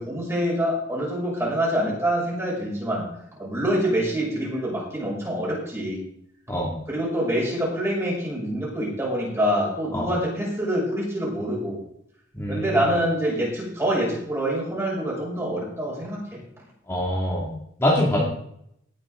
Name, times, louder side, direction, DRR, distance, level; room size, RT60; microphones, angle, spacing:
voice 1, 0.0-3.1 3.4-6.0 6.9-11.8 12.5-16.4, right 1 dB, 15° right, -5 dB, 6.6 m, -26 dB
voice 2, 12.3-12.8 16.9-17.5 17.8-18.3, left 1 dB, 15° left, -5 dB, 2.5 m, -24 dB
19.0 x 8.5 x 3.9 m, 0.72 s
head